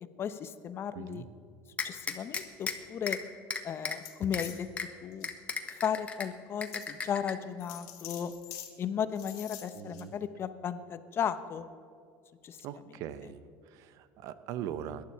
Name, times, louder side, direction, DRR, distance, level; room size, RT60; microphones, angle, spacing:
voice 1, 0.2-1.2 1.8-3.2 3.6-4.7 5.0-5.3 5.8-8.3 8.8-11.7 12.4-12.6, left 8 dB, 40° left, 12 dB, 0.9 m, -35 dB
voice 2, 0.9-1.3 9.7-10.1 12.6-13.4 13.7-15.0, right 10 dB, 65° right, 13 dB, 0.8 m, -40 dB
sound 1, 1.8-2.7 3.1-3.2 3.5-4.0 4.3-4.4 4.8-4.9 5.2-6.3 6.6-7.3, left 4 dB, 20° left, 1.3 m, -34 dB
sound 2, 3.9-4.6 5.1-5.3 5.9-6.0 6.7-6.9 7.6-8.7 9.1-10.0, left 11 dB, 70° left, 2.0 m, -46 dB
18.0 x 11.5 x 4.7 m, 2.2 s
supercardioid pair, 105°, 6 cm